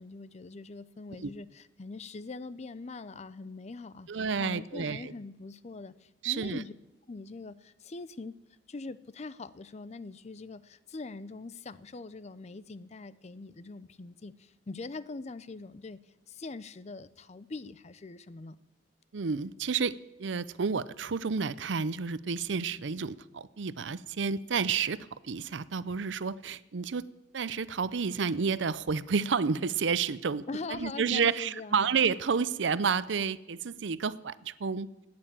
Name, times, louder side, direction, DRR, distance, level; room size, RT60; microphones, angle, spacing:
voice 1, 0.0-6.7 7.1-8.4 8.7-18.6 30.5-31.8, left 3 dB, 35° left, 16 dB, 0.5 m, -43 dB
voice 2, 4.1-5.1 6.2-6.6 19.1-19.9 20.2-25.0 25.2-27.0 27.3-30.5 30.8-34.9, right 5 dB, 75° right, 17 dB, 0.6 m, -30 dB
14.5 x 9.6 x 8.9 m, 0.97 s
head